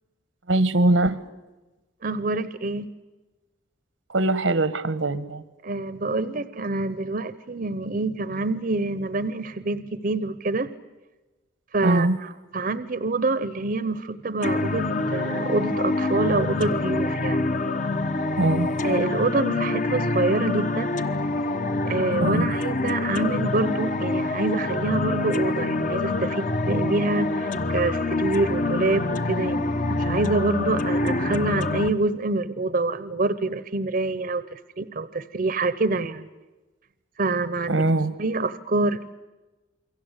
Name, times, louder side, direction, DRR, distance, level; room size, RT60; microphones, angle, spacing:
voice 1, 0.5-1.2 4.1-5.4 11.8-12.2 18.4-18.7 22.2-22.5 37.7-38.1, right 2 dB, 85° right, 15 dB, 1.2 m, -21 dB
voice 2, 2.0-2.9 5.6-10.7 11.7-17.5 18.8-21.0 21.9-36.3 37.2-37.8 38.2-39.1, right 2 dB, 45° right, 14 dB, 0.8 m, -26 dB
sound 1, 14.4-31.9, left 2 dB, 40° left, 1.1 m, -26 dB
28.5 x 23.0 x 8.1 m, 1.1 s
head